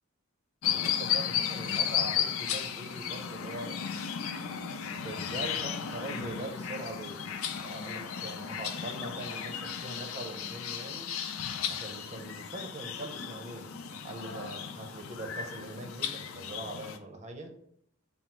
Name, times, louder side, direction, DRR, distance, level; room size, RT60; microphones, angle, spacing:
sound 1, 0.6-17.0, left 8 dB, 90° left, 0.5 m, -34 dB
voice 1, 0.7-4.0 4.9-11.1 11.7-17.5, right 1 dB, 35° right, 4 dB, 0.7 m, -42 dB
5.9 x 2.0 x 4.4 m, 0.70 s
head